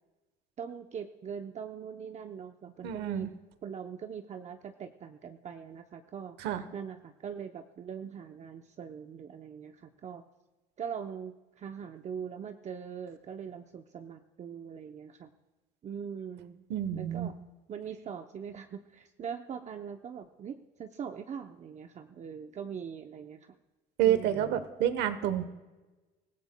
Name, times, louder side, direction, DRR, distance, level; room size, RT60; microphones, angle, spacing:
voice 1, 0.6-10.2 10.8-15.3 15.8-16.7 16.9-17.3 17.7-23.6 24.0-24.6, right 7 dB, 45° right, 6 dB, 0.7 m, -42 dB
voice 2, 2.8-3.3 6.4-6.6 16.7-17.3 24.0-25.5, right 10 dB, 90° right, 12 dB, 1.0 m, -28 dB
24.5 x 15.5 x 2.2 m, 1.2 s
cardioid pair, 110°, 17 cm